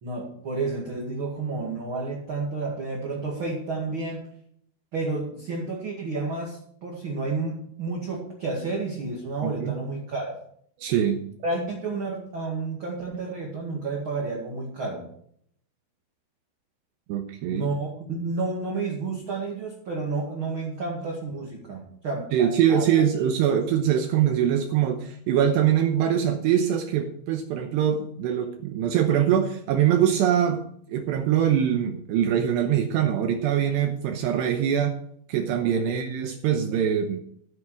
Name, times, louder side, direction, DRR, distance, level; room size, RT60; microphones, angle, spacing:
voice 1, 0.0-4.3 4.9-10.4 11.4-15.1 17.4-22.9 35.9-36.0, right 3 dB, 45° right, -1 dB, 1.7 m, -31 dB
voice 2, 9.4-9.7 10.8-11.2 17.1-17.7 22.3-35.0 35.3-37.2, right 9 dB, 75° right, 5 dB, 2.9 m, -23 dB
14.0 x 8.5 x 4.8 m, 0.64 s
omnidirectional pair, 5.3 m